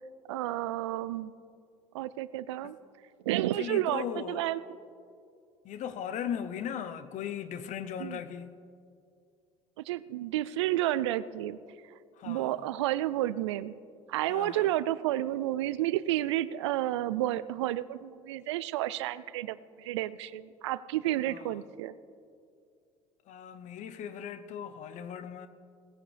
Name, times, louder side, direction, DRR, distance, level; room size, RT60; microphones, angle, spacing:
voice 1, 0.3-1.3 1.9-2.8 3.3-4.6 8.0-8.2 9.9-11.6 12.2-13.7 14.1-22.0, right 14 dB, 90° right, 0.4 m, -31 dB
voice 2, 3.6-4.4 5.6-8.5 12.2-12.5 14.3-14.7 21.3-21.6 23.3-25.5, left 8 dB, 60° left, 0.8 m, -38 dB
18.0 x 15.0 x 3.4 m
hypercardioid pair, 70°, 14 cm